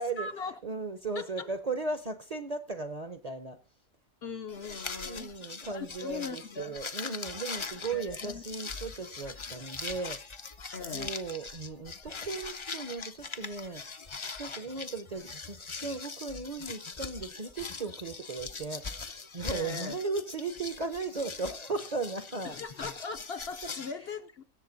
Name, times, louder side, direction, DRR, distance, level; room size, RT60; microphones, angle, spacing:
voice 1, 0.0-0.5 1.2-1.5 4.2-6.8 7.9-8.4 10.7-11.1 19.5-20.0 22.4-24.4, left 4 dB, 55° left, 0.8 m, -40 dB
voice 2, 0.6-3.6 5.0-10.2 10.9-13.9 14.4-22.6, right 3 dB, 35° right, 0.7 m, -36 dB
sound 1, 4.5-23.9, left 4 dB, 40° left, 0.4 m, -41 dB
17.5 x 7.5 x 4.0 m
omnidirectional pair, 1.4 m